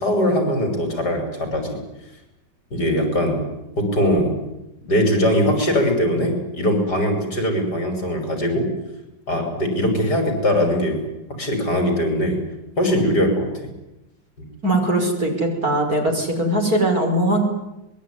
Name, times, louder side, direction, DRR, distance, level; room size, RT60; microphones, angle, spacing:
voice 1, 0.0-1.8 2.7-3.4 3.8-4.3 4.9-8.7 9.3-11.0 11.4-12.4 12.8-13.5, equal, 60° left, 5 dB, 6.6 m, -21 dB
voice 2, 14.6-17.4, right 1 dB, 50° right, 3 dB, 5.9 m, -20 dB
24.0 x 22.0 x 9.8 m, 0.93 s
omnidirectional pair, 2.0 m